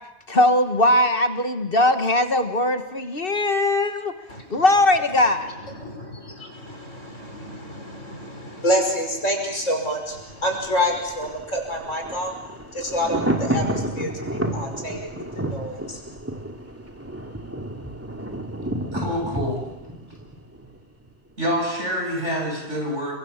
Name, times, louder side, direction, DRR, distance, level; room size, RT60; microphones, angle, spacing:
voice 1, 0.3-4.1 4.5-5.5, left 1 dB, 50° left, 7 dB, 1.8 m, -20 dB
voice 2, 4.3-4.6 5.6-12.3 12.7-16.2, equal, 85° left, 3 dB, 6.0 m, -28 dB
Thunder, 10.1-21.1 21.4-21.5, right 1 dB, 10° right, 2.2 m, -31 dB
voice 3, 18.9-19.7 21.4-23.1, equal, 70° right, 0 dB, 8.5 m, -26 dB
29.5 x 24.0 x 7.4 m, 1.0 s
omnidirectional pair, 1.3 m